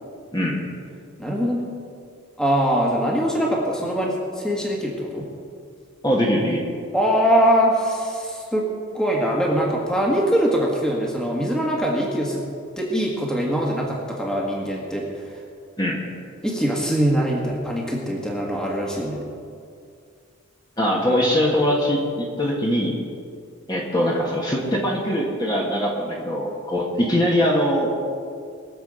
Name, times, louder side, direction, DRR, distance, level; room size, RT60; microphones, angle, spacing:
voice 1, 1.2-1.7 2.4-5.3 6.9-8.7 8.9-12.5 12.8-15.3 16.4-19.2, equal, 5° left, -2 dB, 1.7 m, -22 dB
voice 2, 6.0-6.7 15.8-16.0 20.8-23.0 23.7-27.9, equal, 20° left, -3 dB, 1.6 m, -22 dB
22.0 x 7.5 x 5.0 m, 2.3 s
head